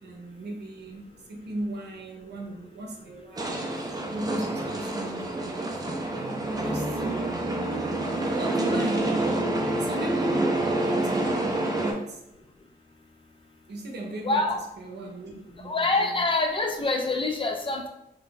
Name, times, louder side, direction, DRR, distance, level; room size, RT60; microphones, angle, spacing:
voice 1, 0.0-3.6 4.1-5.8 6.6-7.5 8.3-9.3 9.7-12.2 13.7-14.5 14.8-16.2, right 1 dB, 75° right, 1 dB, 0.7 m, -37 dB
sound 1, 3.4-11.9, right 2 dB, 20° right, 0.5 m, -27 dB
voice 2, 14.2-14.6 15.6-17.9, left 2 dB, 30° left, 2 dB, 0.5 m, -25 dB
2.7 x 2.4 x 3.7 m, 0.83 s
wide cardioid pair, 110°, 17 cm